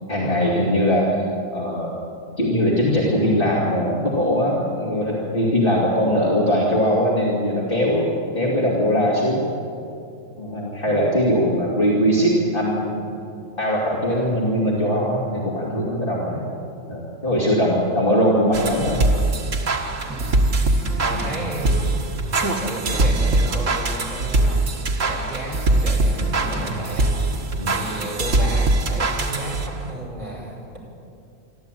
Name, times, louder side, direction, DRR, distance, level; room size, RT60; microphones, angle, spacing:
voice 1, 0.1-1.2 1.5-2.0 2.4-8.1 8.3-9.5 10.4-13.1 13.6-16.4 16.9-19.0 21.1-21.2 26.1-26.3 27.6-27.7, equal, 45° left, -5 dB, 2.9 m, -21 dB
voice 2, 5.9-6.3 8.3-8.6 14.1-14.3 15.8-16.5 17.9-18.0 20.0-24.7 25.0-30.8, right 1 dB, 40° right, -4 dB, 5.1 m, -33 dB
sound 1, 18.5-29.9, right 2 dB, 75° right, 2.0 m, -22 dB
25.0 x 13.5 x 9.1 m, 2.6 s
omnidirectional pair, 1.3 m